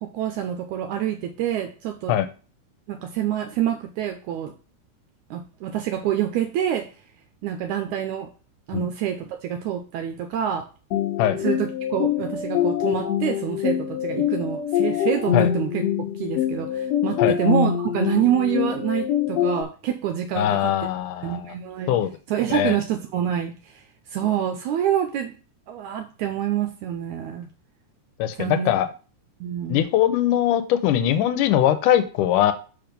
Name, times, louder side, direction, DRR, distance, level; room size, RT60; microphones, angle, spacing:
voice 1, 0.0-2.1 2.9-4.5 5.3-6.9 7.4-8.3 8.7-10.7 11.4-15.8 16.2-20.7 21.2-22.0 22.3-23.5 24.1-25.4 25.7-27.5 28.4-28.7 29.4-29.8, right 10 dB, 80° right, 5 dB, 2.0 m, -26 dB
sound 1, 10.9-19.6, left 9 dB, 65° left, 1.9 m, -24 dB
voice 2, 20.4-21.5 21.9-22.1 22.5-22.8 28.2-28.9 29.7-32.5, left 11 dB, 85° left, 11 dB, 2.3 m, -21 dB
5.9 x 5.0 x 5.2 m, 0.36 s
omnidirectional pair, 3.6 m